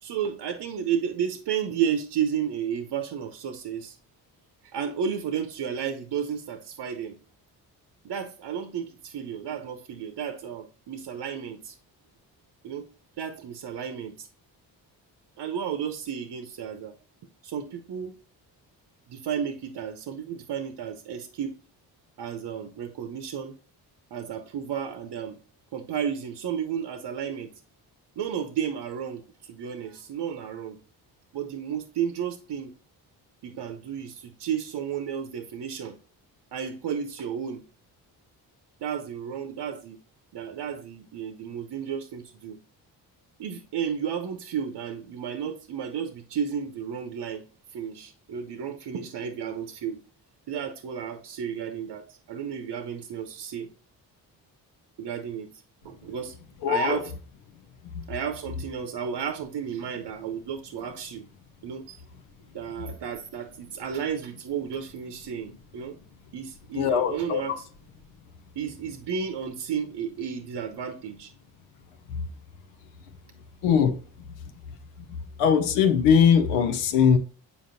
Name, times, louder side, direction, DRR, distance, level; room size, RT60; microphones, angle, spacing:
voice 1, 0.0-4.0 4.6-7.2 8.0-11.8 12.6-12.9 13.2-14.3 15.4-16.9 17.4-18.1 19.1-21.6 22.2-23.5 24.1-25.4 25.7-27.5 28.2-30.8 31.3-32.7 33.4-36.0 36.5-37.6 38.8-40.0 40.3-42.6 43.4-47.4 47.7-50.0 50.5-53.7 55.0-55.5 55.8-56.3 56.7-57.1 58.1-61.2 61.6-62.0 62.5-66.0 66.3-67.5 68.6-71.3, right 8 dB, 50° right, 0.8 m, -32 dB
voice 2, 56.6-57.0 57.9-58.1 62.8-62.9 66.7-67.6 72.1-72.3 73.6-74.0 74.3-74.4 75.0-77.2, left 7 dB, 80° left, 0.8 m, -22 dB
7.0 x 5.1 x 2.6 m
hypercardioid pair, 50°, 49 cm